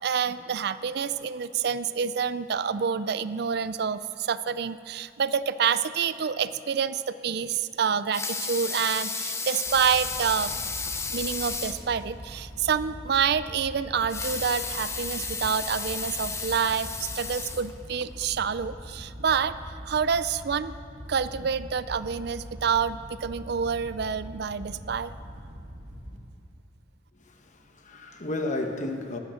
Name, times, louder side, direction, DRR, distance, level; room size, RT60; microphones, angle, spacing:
voice 1, 0.0-10.6 11.1-19.6 19.9-20.7 21.1-25.1, right 6 dB, 60° right, 14 dB, 0.4 m, -28 dB
Water tap faucet / Sink (filling or washing) / Liquid, 7.9-11.9 12.3-12.4 12.8-12.9 14.0-18.1 18.7-18.8, left 4 dB, 15° left, 0.7 m, -33 dB
Wind / Boat Water vehicle, 9.6-26.2, equal, 40° right, 2.0 m, -43 dB
voice 2, 27.1-29.2, left 2 dB, 40° left, 5 dB, 1.2 m, -33 dB
19.0 x 8.8 x 6.4 m, 2.6 s
head